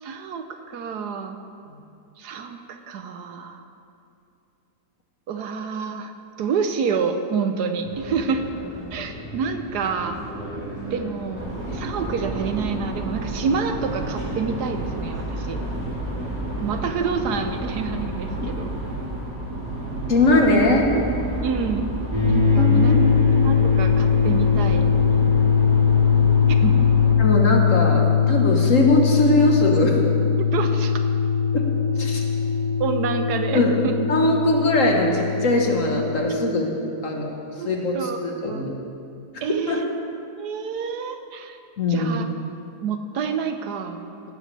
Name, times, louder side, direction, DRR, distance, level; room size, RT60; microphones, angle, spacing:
voice 1, 0.0-1.4 2.2-3.6 5.3-6.1 6.4-8.4 8.9-10.2 10.9-15.6 16.6-18.7 20.7-21.0 21.4-22.0 22.2-23.1 23.3-24.9 26.5-26.9 30.5-30.9 32.8-33.9 36.3-36.4 37.6-37.7 37.9-38.2 38.5-38.7 39.4-40.0 40.4-41.6 41.9-42.3 42.8-44.0, right 5 dB, 75° right, 7 dB, 1.3 m, -28 dB
sound 1, 7.8-17.4, equal, 75° left, 3.9 m, -37 dB
car atspeed loop, 11.4-27.1, right 1 dB, 55° right, 2.4 m, -31 dB
voice 2, 20.1-20.9 22.5-23.0 27.2-30.0 31.5-31.7 32.0-32.2 33.5-33.7 34.1-36.7 37.0-37.4 37.6-38.7 39.7-39.8 41.8-42.1, left 2 dB, 50° left, 1 dB, 1.6 m, -20 dB
sound 2, 22.1-36.2, left 6 dB, 30° left, 2.5 m, -20 dB
16.5 x 12.5 x 3.4 m, 2.7 s
omnidirectional pair, 1.8 m